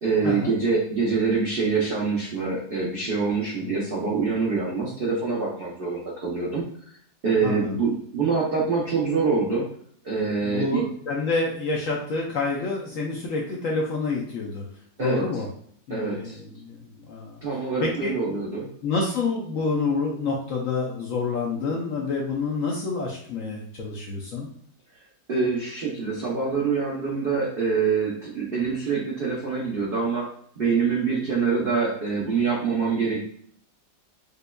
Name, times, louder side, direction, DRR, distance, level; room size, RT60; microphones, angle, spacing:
voice 1, 0.0-6.6 7.2-9.7 10.0-10.8 15.0-15.3 15.9-16.4 17.4-18.7 25.3-30.3 30.6-33.2, right 5 dB, 85° right, -4 dB, 0.5 m, -25 dB
voice 2, 7.4-7.7 10.4-14.6 15.0-15.5 15.9-17.4 17.8-18.3 18.8-24.5, left 4 dB, 65° left, -2 dB, 0.8 m, -28 dB
5.1 x 2.3 x 2.2 m, 0.62 s
omnidirectional pair, 1.9 m